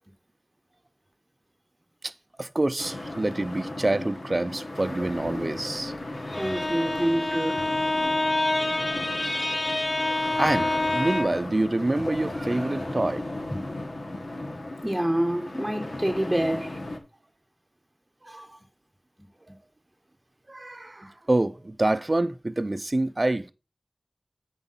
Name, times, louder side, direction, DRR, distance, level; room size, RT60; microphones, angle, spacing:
voice 1, 2.4-5.9 7.3-7.4 10.2-13.2 18.3-18.5 20.5-23.5, right 2 dB, 45° right, 0.5 m, -27 dB
sound 1, 2.8-17.0, left 1 dB, 90° left, 1.4 m, -36 dB
Bowed string instrument, 6.2-11.5, left 2 dB, 45° left, 1.1 m, -27 dB
voice 2, 6.4-7.7 13.5-13.6 14.8-16.8 18.3-18.5, right 1 dB, 5° right, 1.1 m, -27 dB
9.0 x 4.7 x 5.6 m
wide cardioid pair, 55°, 0 cm